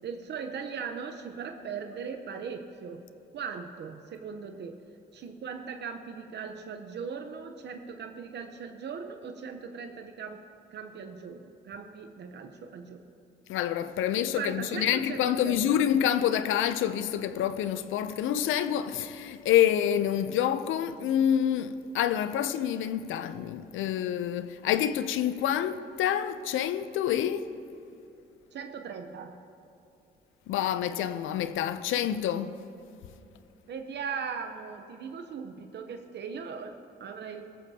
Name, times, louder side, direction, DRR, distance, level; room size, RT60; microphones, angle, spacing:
voice 1, 0.0-3.0 3.3-4.8 5.1-10.4 10.7-13.0 14.4-15.8 28.5-29.4 33.7-37.4, right 6 dB, 60° right, 0.9 m, -39 dB
voice 2, 13.5-27.4 30.5-32.6, left 10 dB, 85° left, 0.6 m, -27 dB
17.5 x 14.0 x 2.8 m
cardioid pair, 90°, 20 cm